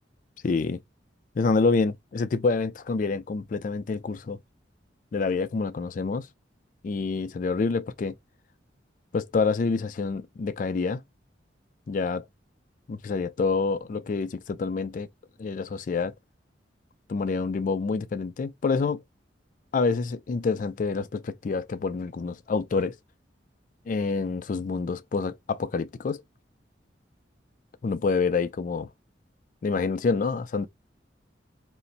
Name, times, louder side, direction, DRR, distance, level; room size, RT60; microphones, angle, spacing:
voice 1, 0.4-0.8 1.4-4.4 5.1-6.3 6.8-8.1 9.1-11.0 11.9-12.2 12.9-15.1 15.4-16.1 17.1-19.0 19.7-22.9 23.9-26.2 27.8-28.9 29.6-30.7, left 4 dB, 45° left, 0.3 m, -27 dB
2.5 x 2.0 x 3.9 m
head